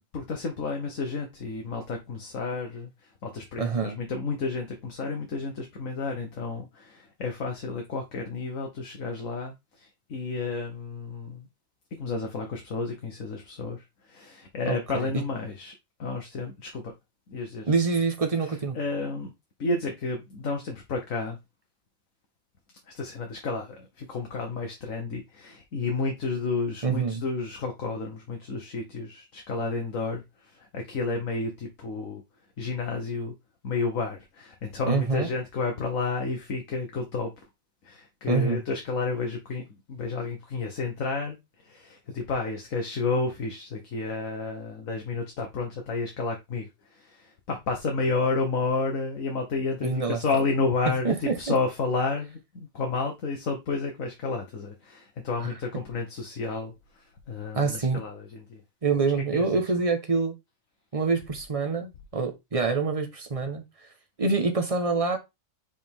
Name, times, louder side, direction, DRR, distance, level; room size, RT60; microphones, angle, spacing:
voice 1, 0.1-11.5 12.0-15.7 16.0-16.9 17.3-17.7 18.4-19.3 19.6-21.4 22.9-32.2 32.6-33.3 33.6-37.4 37.8-41.4 41.6-58.6 59.3-59.6, left 3 dB, 75° left, 1.6 m, -31 dB
voice 2, 3.6-4.0 14.7-14.8 17.7-18.8 26.8-27.2 34.9-35.3 38.3-38.6 49.8-50.2 51.0-51.3 57.5-58.0 58.8-60.3 60.9-63.6 64.2-65.2, right 4 dB, 25° right, 1.2 m, -25 dB
5.3 x 5.1 x 3.6 m
omnidirectional pair, 1.4 m